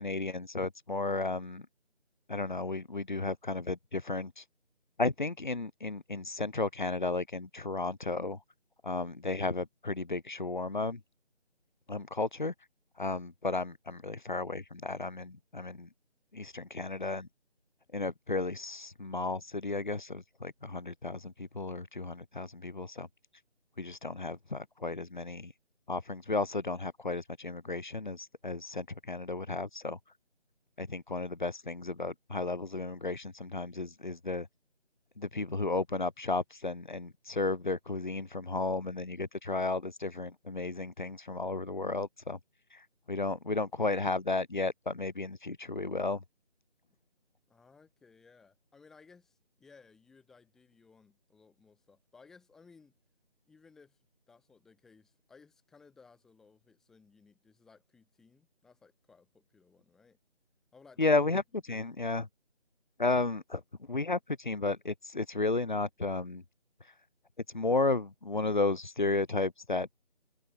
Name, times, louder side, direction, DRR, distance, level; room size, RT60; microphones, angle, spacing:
voice 1, 0.0-1.7 2.3-4.5 5.0-8.4 8.8-11.0 11.9-12.5 13.0-15.9 16.3-17.3 17.9-23.1 23.8-25.5 25.9-30.0 30.8-34.5 35.2-42.4 42.7-46.2 61.0-62.3 63.0-63.6 63.9-66.4 66.8-66.9 67.5-69.9, left 3 dB, 45° left, 7.5 m, -33 dB
voice 2, 47.5-53.0 53.5-54.0 54.3-60.2 60.7-61.2 61.7-61.8, left 4 dB, ahead, 6.6 m, -60 dB
figure-of-eight pair, 175°, 34 cm